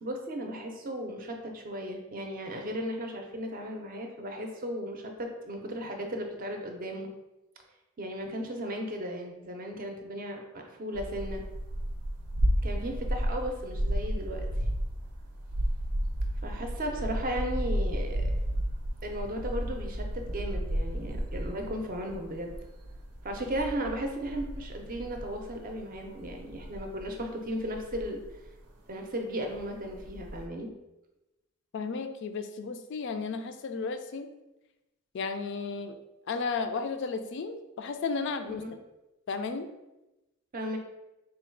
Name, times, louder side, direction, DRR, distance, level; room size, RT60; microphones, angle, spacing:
voice 1, 0.0-7.1 8.0-11.4 12.6-14.5 16.4-18.2 19.0-22.5 23.2-28.2 28.9-30.7 38.6-38.7 40.5-40.8, equal, 40° right, 3 dB, 0.5 m, -35 dB
sound 1, 10.9-28.7 29.1-29.2 29.5-30.5, equal, 80° right, 0.6 m, -33 dB
voice 2, 31.7-34.3 35.1-36.0 36.3-38.6 39.3-39.7, left 4 dB, 55° left, 8 dB, 0.3 m, -33 dB
3.8 x 2.3 x 4.4 m, 0.98 s
head